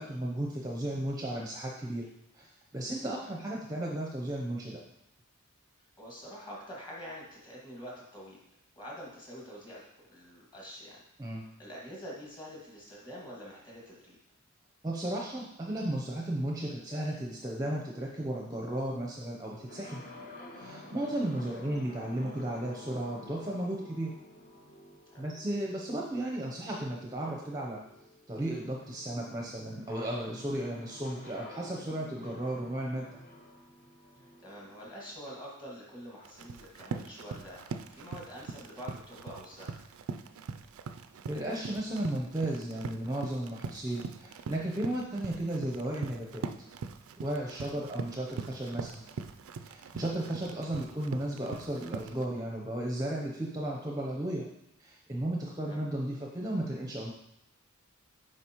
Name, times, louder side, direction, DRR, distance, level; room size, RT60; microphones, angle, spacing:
voice 1, 0.0-2.1 2.3-2.5 2.7-4.8 11.2-11.4 14.8-20.0 20.5-24.1 25.2-27.8 28.3-33.1 41.3-46.5 47.2-49.0 49.6-54.5 54.8-57.1, right 1 dB, 15° right, -2 dB, 0.6 m, -34 dB
voice 2, 6.0-8.4 8.8-11.0 11.3-14.2 21.5-21.7 25.1-25.2 34.4-37.6 37.9-39.7 47.6-47.8 55.6-55.8, equal, 20° left, -4 dB, 1.8 m, -46 dB
sound 1, 19.7-35.4, left 1 dB, 40° left, 0.9 m, -50 dB
Run, 36.2-52.3, right 5 dB, 70° right, 0.4 m, -42 dB
7.8 x 5.0 x 2.9 m, 0.81 s
head